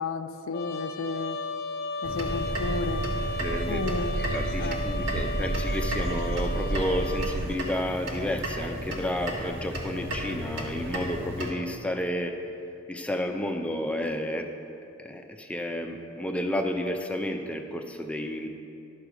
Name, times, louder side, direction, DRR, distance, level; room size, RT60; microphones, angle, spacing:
voice 1, 0.0-1.4 2.0-3.1 3.7-4.8, left 4 dB, 85° left, 10 dB, 0.5 m, -33 dB
Trumpet, 0.5-7.4, left 1 dB, 50° left, 0.7 m, -34 dB
sound 1, 2.0-11.5, equal, 65° right, 1.4 m, -35 dB
sound 2, 2.3-7.6, right 1 dB, 80° right, 0.5 m, -32 dB
voice 2, 3.4-3.8 4.3-12.3 12.9-14.5 15.0-18.5, left 1 dB, 5° left, 4 dB, 0.5 m, -31 dB
11.0 x 6.6 x 4.8 m, 2.6 s
head